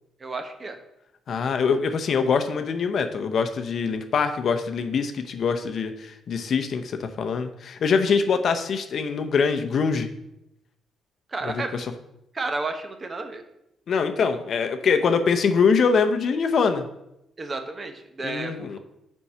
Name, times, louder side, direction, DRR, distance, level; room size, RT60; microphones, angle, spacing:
voice 1, 0.2-0.8 11.3-11.7 12.3-13.4 17.4-18.8, right 3 dB, 35° right, 7 dB, 0.9 m, -32 dB
voice 2, 1.3-10.1 11.5-11.8 13.9-16.8 18.2-18.8, left 5 dB, 60° left, 8 dB, 0.7 m, -23 dB
5.7 x 4.5 x 5.5 m, 0.83 s
cardioid pair, 90°, 0 cm